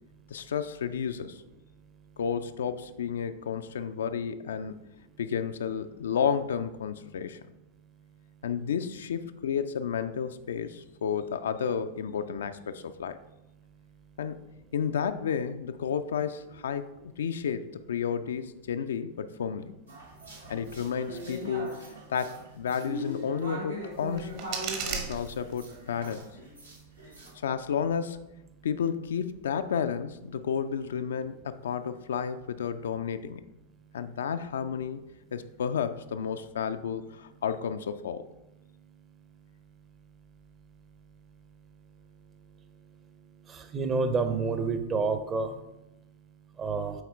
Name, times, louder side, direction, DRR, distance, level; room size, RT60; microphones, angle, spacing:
voice 1, 0.3-1.4 2.2-4.8 5.2-7.4 8.4-13.2 14.2-14.4 14.7-16.9 17.2-19.7 20.5-21.8 22.1-24.3 25.1-26.3 27.4-28.2 28.6-33.4 33.9-35.0 35.3-38.3, left 7 dB, 65° left, 10 dB, 0.3 m, -31 dB
sound 1, 19.9-27.3, equal, 80° right, 1.4 m, -41 dB
sound 2, 23.9-25.9, right 5 dB, 45° right, 1.1 m, -37 dB
voice 2, 43.5-45.5 46.6-46.9, right 4 dB, 25° right, 8 dB, 0.7 m, -28 dB
7.9 x 4.2 x 3.4 m, 0.96 s
figure-of-eight pair, 90°, 0 cm